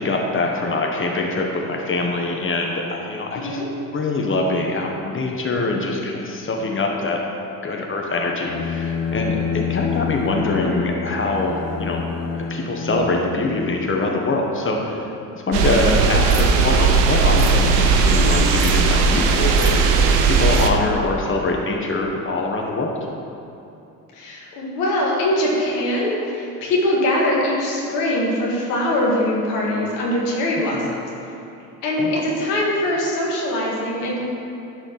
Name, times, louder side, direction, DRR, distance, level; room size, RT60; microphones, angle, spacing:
voice 1, 0.0-3.6 3.9-7.2 7.6-12.0 12.3-15.1 15.3-19.9 20.2-23.0 32.0-32.2, left 2 dB, 25° left, 0 dB, 1.5 m, -23 dB
voice 2, 3.3-3.7 18.0-18.3 24.1-30.8 31.8-34.2, left 1 dB, 80° left, -4 dB, 2.1 m, -22 dB
Bowed string instrument, 8.4-14.3, left 6 dB, 45° left, 1.1 m, -28 dB
sound 1, 15.5-20.7, right 4 dB, 75° right, 1.0 m, -17 dB
11.0 x 4.9 x 6.0 m, 2.8 s
hypercardioid pair, 60°, 47 cm